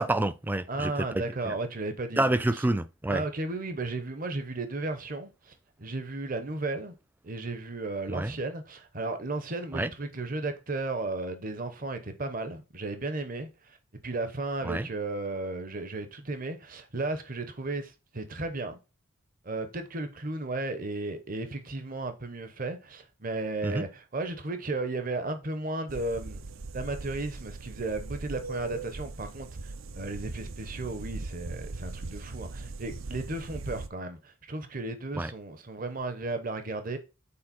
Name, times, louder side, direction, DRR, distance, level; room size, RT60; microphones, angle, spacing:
voice 1, 0.0-1.5 2.2-3.2 8.1-8.3 9.7-9.9 14.6-14.9 23.6-23.8 35.1-35.3, right 1 dB, 10° right, 0.3 m, -28 dB
voice 2, 0.7-2.6 3.1-5.5 5.8-6.9 7.2-13.8 14.0-18.8 19.4-26.4 26.7-37.0, right 2 dB, 40° right, 0.9 m, -34 dB
sound 1, 25.9-33.9, right 3 dB, 70° right, 0.7 m, -40 dB
8.7 x 4.4 x 4.3 m
head